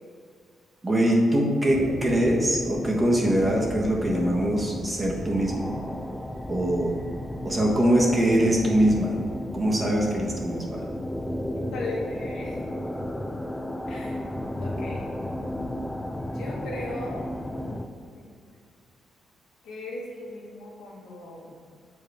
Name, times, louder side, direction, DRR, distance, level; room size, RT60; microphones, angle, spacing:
voice 1, 0.8-5.7 6.5-6.9 7.4-9.2 9.5-10.9, right 1 dB, 25° right, -2 dB, 1.2 m, -23 dB
sound 1, 1.7-17.9, left 1 dB, 10° left, 0.4 m, -34 dB
voice 2, 11.7-12.6 13.9-14.2 14.6-15.1 16.3-17.2 17.7-17.8 18.1-18.3 19.6-21.6, left 2 dB, 85° left, -4 dB, 1.4 m, -37 dB
6.9 x 4.7 x 3.4 m, 2.2 s
cardioid pair, 85°, 0 cm